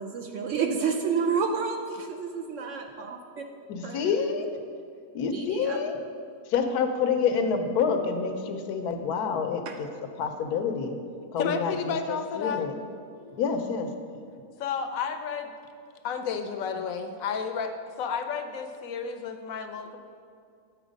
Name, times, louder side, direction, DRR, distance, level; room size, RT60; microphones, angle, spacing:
voice 1, 0.0-3.4 3.8-4.3 5.3-5.8 9.7-9.8, right 5 dB, 65° right, 3 dB, 0.8 m, -30 dB
voice 2, 3.7-4.5 5.1-6.0 6.5-9.9 10.2-11.0 11.3-12.7 13.4-13.9, left 6 dB, 90° left, 6 dB, 1.2 m, -27 dB
voice 3, 11.4-12.7 13.2-13.4 14.6-15.5 16.0-20.0, left 6 dB, 70° left, 7 dB, 0.9 m, -32 dB
8.8 x 4.4 x 5.1 m, 2.3 s
omnidirectional pair, 1.6 m